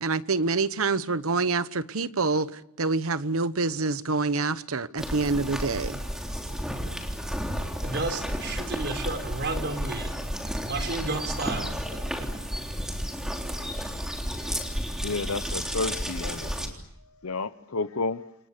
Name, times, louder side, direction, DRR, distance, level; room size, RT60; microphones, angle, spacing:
voice 1, 0.0-6.0, right 3 dB, 75° right, 14 dB, 1.1 m, -26 dB
sound 1, 5.0-16.7, equal, 5° right, 3.5 m, -32 dB
voice 2, 7.6-10.1 10.4-11.7 12.2-12.3, right 3 dB, 55° right, 6 dB, 4.1 m, -32 dB
voice 3, 15.0-16.7 17.2-18.2, left 3 dB, 85° left, 14 dB, 0.9 m, -31 dB
29.0 x 26.0 x 6.8 m, 0.78 s
head